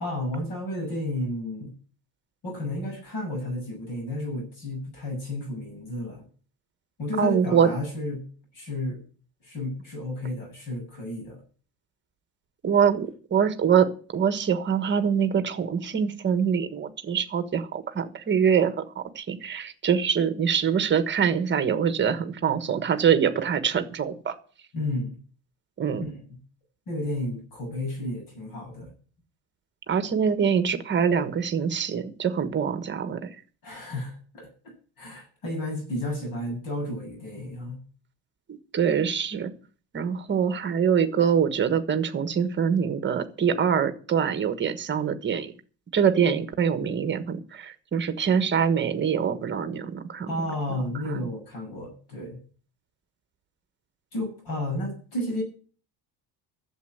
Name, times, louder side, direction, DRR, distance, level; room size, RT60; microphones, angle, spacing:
voice 1, 0.0-1.7 2.4-6.2 7.0-8.2 8.5-9.0 9.4-11.4 24.7-25.2 26.0-26.2 26.9-28.9 33.6-37.8 50.3-52.4 54.1-55.4, left 1 dB, 50° left, 2 dB, 7.8 m, -32 dB
voice 2, 7.2-7.7 12.6-24.3 25.8-26.0 29.9-33.3 38.5-39.5 39.9-45.5 45.9-50.3 51.0-51.2, right 7 dB, 25° right, 10 dB, 1.3 m, -24 dB
12.5 x 7.7 x 7.9 m, 0.40 s
cardioid pair, 175°, 43 cm